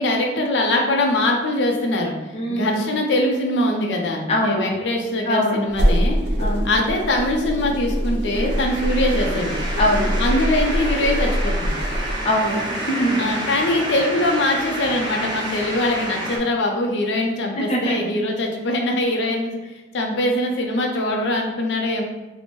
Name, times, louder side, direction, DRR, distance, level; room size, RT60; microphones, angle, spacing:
voice 1, 0.0-2.1 2.5-6.2 6.6-9.6 10.2-11.7 13.2-19.5 19.9-22.0, left 1 dB, 90° left, 2 dB, 0.5 m, -22 dB
voice 2, 2.3-2.8 4.3-4.6 5.3-5.6 6.4-6.7 9.8-10.1 12.2-12.6 12.9-13.2 17.6-18.0, equal, 35° left, -1 dB, 0.6 m, -21 dB
sound 1, 5.7-12.2, equal, 70° right, 0.5 m, -23 dB
sound 2, 6.3-16.4, right 1 dB, 25° right, 0.6 m, -30 dB
4.3 x 2.0 x 2.9 m, 1.1 s
head